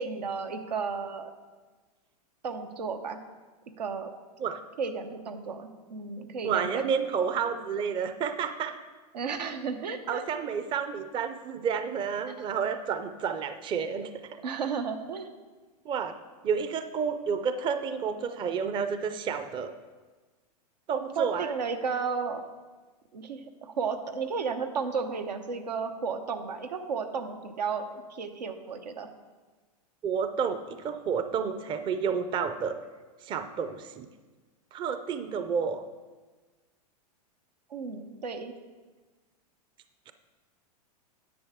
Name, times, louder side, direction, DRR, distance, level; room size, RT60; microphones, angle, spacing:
voice 1, 0.0-1.3 2.4-3.2 3.8-4.1 4.8-6.7 9.1-10.2 12.4-12.5 14.4-15.3 21.2-22.4 23.1-29.1 37.7-38.5, right 5 dB, 90° right, 6 dB, 1.0 m, -33 dB
voice 2, 6.4-8.8 10.1-14.1 15.8-16.2 16.4-19.7 20.9-21.5 30.0-32.8 33.2-34.1 34.7-35.8, right 6 dB, 25° right, 9 dB, 0.5 m, -30 dB
10.0 x 8.2 x 3.6 m, 1.3 s
hypercardioid pair, 120°, 21 cm